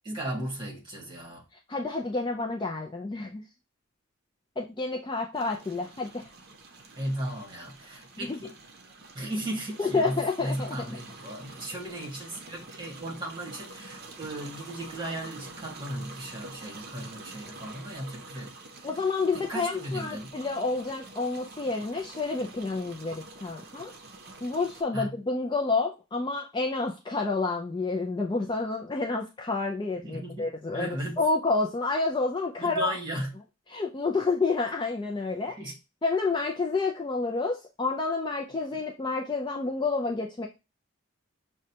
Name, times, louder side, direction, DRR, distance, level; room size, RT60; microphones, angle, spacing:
voice 1, 0.0-1.4 6.9-8.5 9.1-18.9 19.3-20.3 24.9-25.1 30.0-31.2 32.6-33.3 35.5-35.8, right 1 dB, 20° right, 1.4 m, -36 dB
voice 2, 1.7-3.4 4.6-6.3 8.2-8.4 9.8-11.0 18.8-23.9 24.4-33.0 33.7-35.6 36.0-40.5, left 3 dB, 20° left, 0.3 m, -29 dB
sound 1, 5.3-24.8, right 3 dB, 45° right, 0.6 m, -47 dB
6.2 x 2.2 x 2.7 m
head